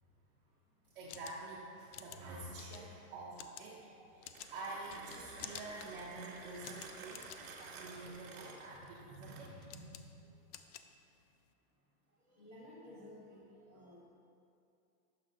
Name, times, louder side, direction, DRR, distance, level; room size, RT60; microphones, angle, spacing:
sound 1, 0.9-11.5, left 10 dB, 75° left, 0.5 m, -53 dB
voice 1, 0.9-10.1, right 2 dB, 35° right, -5 dB, 0.6 m, -48 dB
voice 2, 3.7-4.4 10.2-10.5 12.1-14.1, left 1 dB, 20° left, -8 dB, 0.4 m, -57 dB
Mechanisms, 4.1-9.8, right 4 dB, 65° right, 1.1 m, -52 dB
6.6 x 5.0 x 3.8 m, 2.6 s
supercardioid pair, 165°, 46 cm